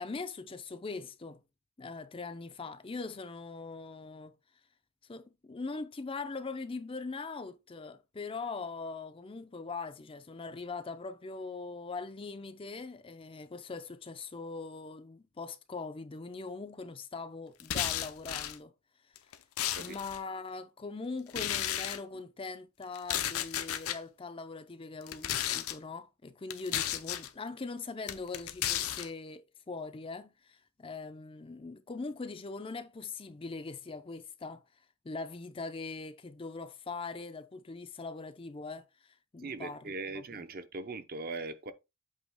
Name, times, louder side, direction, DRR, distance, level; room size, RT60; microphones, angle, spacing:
voice 1, 0.0-1.4 1.8-4.4 5.1-18.7 19.8-34.6 35.0-40.4, left 4 dB, 25° left, 0.5 m, -41 dB
sound 1, 17.6-18.6 19.2-20.2 21.3-22.0 22.9-24.0 25.0-25.8 26.5-27.3 28.1-29.1, left 11 dB, 80° left, 0.7 m, -33 dB
voice 2, 39.4-41.7, right 3 dB, 40° right, 0.6 m, -40 dB
8.1 x 2.9 x 4.8 m
head